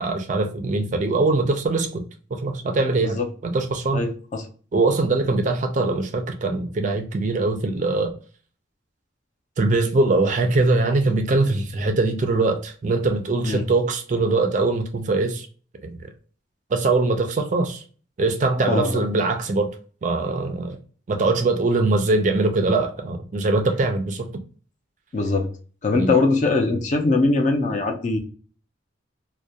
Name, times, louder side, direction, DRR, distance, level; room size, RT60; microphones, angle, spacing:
voice 1, 0.0-2.0 2.3-4.1 4.7-8.1 9.6-15.5 15.8-16.0 16.7-17.8 18.2-19.7 20.0-20.8 21.1-24.3 25.9-26.1, right 3 dB, 40° right, 0.3 m, -22 dB
voice 2, 3.9-4.5 13.4-13.6 18.7-19.1 25.1-25.5 25.8-28.2, left 3 dB, 40° left, 0.4 m, -22 dB
2.3 x 2.1 x 2.6 m
head